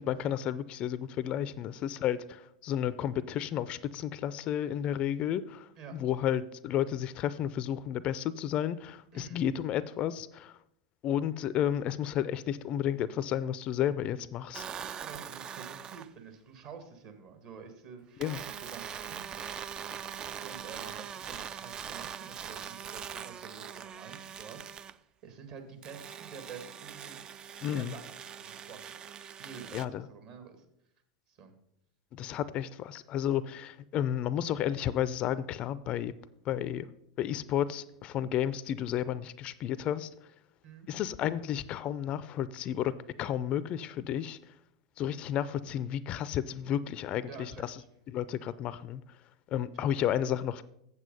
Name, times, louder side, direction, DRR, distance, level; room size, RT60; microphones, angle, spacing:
voice 1, 0.0-10.6 11.0-14.6 18.2-18.4 27.6-27.9 29.7-30.1 32.1-36.1 36.5-36.9 37.2-40.1 40.9-42.9 43.2-44.4 45.0-47.8 48.1-49.0 49.5-50.6, left 10 dB, 40° left, 17 dB, 0.4 m, -32 dB
voice 2, 9.1-9.4 15.0-19.2 20.4-24.6 25.2-27.2 27.7-30.6 31.3-31.5 40.6-40.9 47.3-47.9 49.9-50.0, right 6 dB, 50° right, 7 dB, 1.8 m, -49 dB
sound 1, 14.5-16.1 18.2-25.0 25.8-29.8, right 8 dB, 30° right, 0.4 m, -42 dB
8.2 x 7.3 x 5.3 m, 0.77 s
hypercardioid pair, 90°, 3 cm